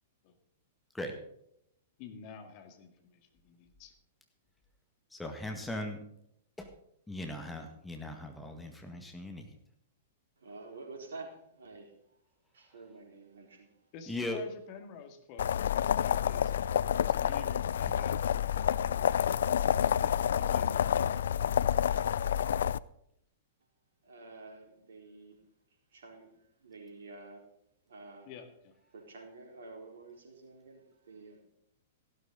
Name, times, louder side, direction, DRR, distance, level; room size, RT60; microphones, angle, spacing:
voice 1, 2.0-3.9 13.9-18.4 20.0-21.4 28.3-28.7, left 7 dB, 40° left, 6 dB, 2.2 m, -49 dB
voice 2, 5.1-6.0 6.6-6.7 7.1-9.5 14.1-14.4, left 1 dB, 5° left, 3 dB, 1.8 m, -39 dB
voice 3, 10.4-11.9 12.5-13.8 24.0-25.4 25.9-27.5 27.9-28.3 28.9-31.4, right 3 dB, 60° right, 2 dB, 4.1 m, -49 dB
sound 1, 15.4-22.8, left 9 dB, 60° left, 0.4 m, -28 dB
15.5 x 12.5 x 3.9 m, 0.74 s
figure-of-eight pair, 105°, 0 cm